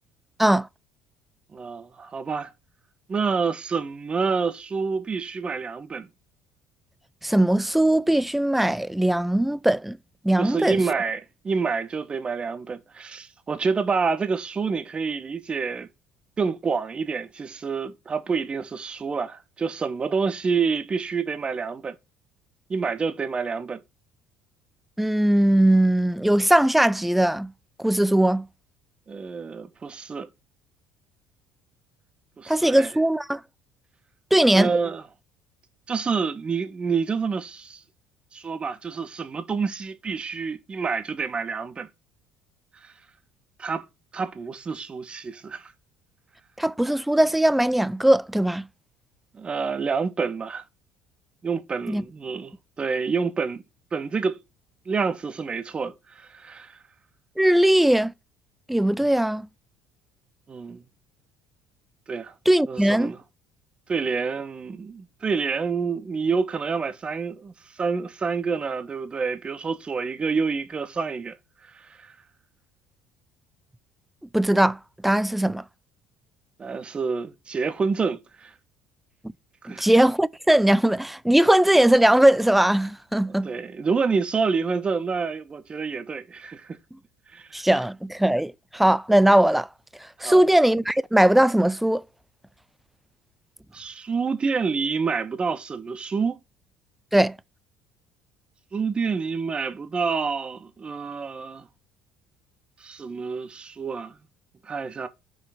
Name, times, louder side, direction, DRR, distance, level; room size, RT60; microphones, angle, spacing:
voice 1, 1.5-2.5 3.1-6.1 10.4-15.9 16.4-21.9 22.7-23.8 29.1-30.3 32.4-32.9 34.5-35.0 35.9-37.8 38.3-41.9 42.8-42.9 43.6-43.9 44.1-45.7 49.3-50.6 51.4-53.6 53.9-54.4 54.9-56.8 60.5-60.8 62.1-62.3 62.7-63.2 63.9-71.3 71.6-72.1 76.6-78.5 79.6-79.9 83.4-86.8 87.3-87.5 90.2-90.4 93.7-96.4 98.7-101.7 102.8-104.2 104.6-105.1, right 5 dB, 30° right, 1.1 m, -28 dB
voice 2, 7.2-10.0 10.2-10.8 25.0-27.5 27.8-28.5 32.5-33.4 34.3-34.7 46.6-48.7 51.9-52.0 57.4-58.1 58.7-59.5 62.5-63.1 74.3-75.6 79.7-83.5 87.5-89.7 90.2-92.0 97.1-97.4, right 1 dB, 5° right, 0.4 m, -20 dB
6.1 x 5.0 x 4.2 m
hypercardioid pair, 70°, 3 cm